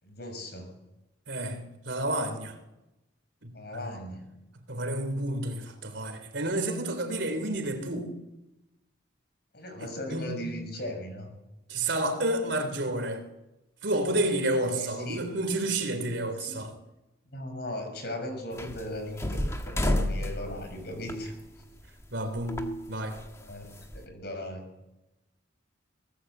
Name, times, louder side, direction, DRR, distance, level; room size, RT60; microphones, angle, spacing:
voice 1, 0.0-0.8 3.5-4.3 9.5-11.3 14.7-15.3 16.4-16.7 17.3-21.4 23.4-24.7, left 1 dB, 55° left, 6.4 m, -38 dB
voice 2, 1.3-2.6 3.4-3.5 4.7-8.1 9.8-10.3 11.7-13.2 13.8-16.7 22.1-23.2, right 1 dB, 65° right, 3.5 m, -30 dB
sound 1, 18.5-22.1 22.4-24.0, left 1 dB, 15° left, 1.7 m, -31 dB
23.0 x 19.0 x 8.1 m
head